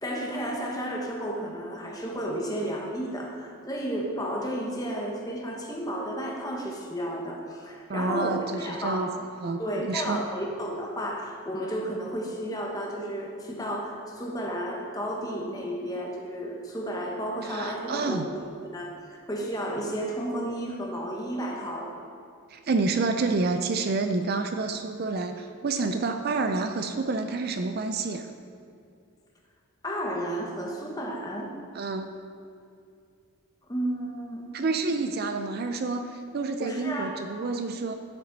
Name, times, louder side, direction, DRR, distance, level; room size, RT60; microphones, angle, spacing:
voice 1, 0.0-9.1 9.6-18.3 18.6-18.9 19.3-21.9 29.8-31.5 33.7-34.4 36.6-37.1, equal, 15° left, -2 dB, 1.2 m, -32 dB
voice 2, 7.9-9.1 9.4-10.2 17.4-18.3 22.5-28.3 31.7-32.1 34.5-37.9, right 3 dB, 45° right, 7 dB, 0.4 m, -28 dB
10.5 x 6.9 x 4.1 m, 2.4 s
head